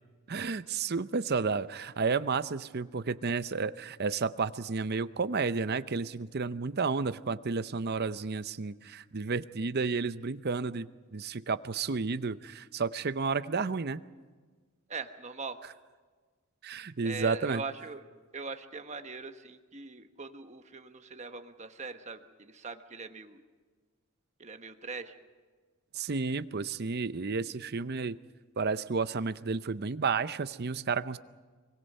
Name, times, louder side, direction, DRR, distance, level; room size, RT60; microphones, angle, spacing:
voice 1, 0.3-14.0 16.6-17.6 25.9-28.2 28.6-31.2, right 4 dB, 45° right, 13 dB, 0.6 m, -31 dB
voice 2, 14.9-15.6 17.0-18.0 18.3-23.4 24.4-25.1, right 4 dB, 30° right, 7 dB, 1.1 m, -41 dB
24.5 x 23.5 x 5.5 m, 1.4 s
head